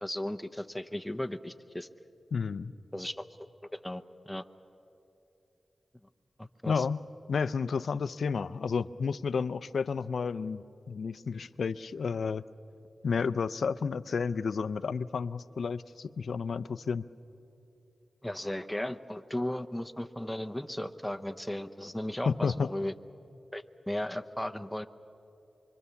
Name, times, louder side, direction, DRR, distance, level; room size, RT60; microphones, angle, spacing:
voice 1, 0.0-1.9 2.9-4.4 6.4-6.8 18.2-22.9 23.5-24.9, left 1 dB, 5° left, 8 dB, 0.8 m, -36 dB
voice 2, 2.3-2.7 6.7-7.0 7.3-12.4 13.0-17.1 22.3-22.7, left 5 dB, 75° left, 16 dB, 0.5 m, -31 dB
24.5 x 24.5 x 7.0 m, 2.9 s
cardioid pair, 55°, 0 cm